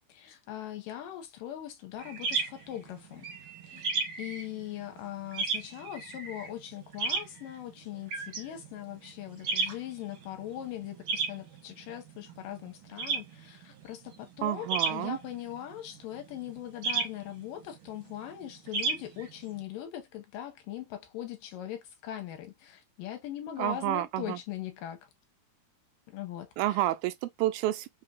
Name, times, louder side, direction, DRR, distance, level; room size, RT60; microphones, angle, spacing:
voice 1, 0.1-3.3 3.6-3.9 4.2-25.1 26.1-26.9, left 12 dB, 75° left, 2.4 m, -40 dB
sound 1, 2.0-19.6, right 4 dB, 60° right, 1.4 m, -35 dB
voice 2, 14.4-15.2 23.6-24.4 26.6-27.9, right 15 dB, 85° right, 2.3 m, -29 dB
5.6 x 2.6 x 2.4 m
omnidirectional pair, 4.2 m